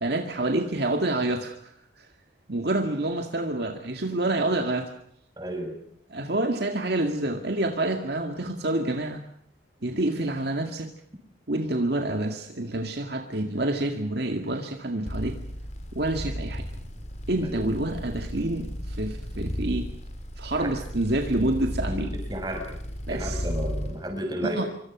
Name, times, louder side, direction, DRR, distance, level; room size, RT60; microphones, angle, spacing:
voice 1, 0.0-2.1 2.5-4.9 6.1-9.2 9.8-10.9 11.5-15.4 15.9-16.7 17.3-19.9 20.4-22.1 23.1-23.4 24.4-24.7, right 1 dB, 60° right, 4 dB, 2.1 m, -28 dB
voice 2, 5.4-5.8 17.4-17.7 20.6-20.7 21.9-22.8 23.1-24.6, equal, 20° right, 3 dB, 7.2 m, -32 dB
sound 1, 15.1-24.0, equal, 35° left, 3.9 m, -34 dB
26.0 x 25.0 x 6.1 m, 0.67 s
head